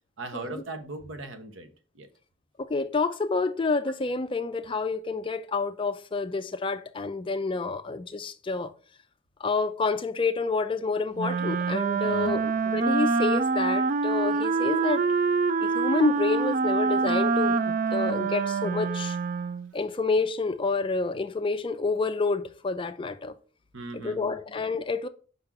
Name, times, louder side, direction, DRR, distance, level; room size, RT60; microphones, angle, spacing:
voice 1, 0.2-2.1 12.0-12.6 23.7-24.4, right 2 dB, 75° right, 1.0 m, -39 dB
voice 2, 2.6-8.7 9.4-15.0 15.6-19.2 19.7-23.3 23.9-25.1, left 3 dB, 25° left, 0.4 m, -28 dB
Wind instrument woodwind instrument, 11.2-19.7, right 4 dB, 45° right, 0.3 m, -25 dB
5.5 x 3.7 x 5.8 m
head